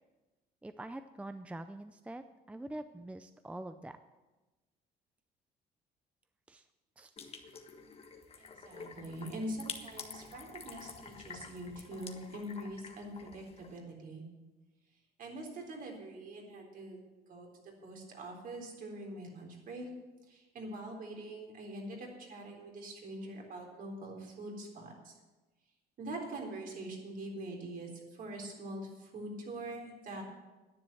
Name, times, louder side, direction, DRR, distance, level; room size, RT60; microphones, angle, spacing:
voice 1, 0.6-4.0 6.5-6.6 7.0-7.1, right 1 dB, 5° right, 10 dB, 0.5 m, -45 dB
sound 1, 7.2-13.8, left 5 dB, 35° left, 1.5 m, -48 dB
voice 2, 8.4-14.2 15.2-17.0 17.3-17.5 17.8-19.9 20.3-25.1 26.0-30.2, right 1 dB, 55° right, 1 dB, 3.7 m, -43 dB
10.5 x 9.9 x 7.6 m, 1.2 s
cardioid pair, 110°, 17 cm